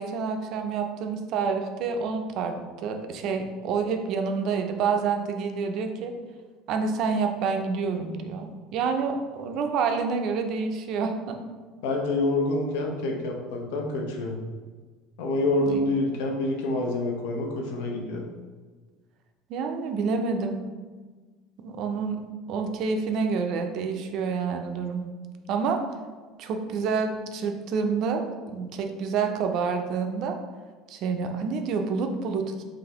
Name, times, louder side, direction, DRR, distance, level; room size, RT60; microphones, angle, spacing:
voice 1, 0.0-6.1 6.7-11.4 15.7-15.8 19.5-20.6 21.6-22.2 22.5-25.1 25.5-25.8 26.4-30.4 30.9-32.6, right 5 dB, 45° right, 6 dB, 0.4 m, -28 dB
voice 2, 11.8-14.4 15.2-18.2, left 2 dB, 85° left, 1 dB, 0.7 m, -27 dB
3.9 x 3.1 x 2.9 m, 1.4 s
cardioid pair, 165°, 0 cm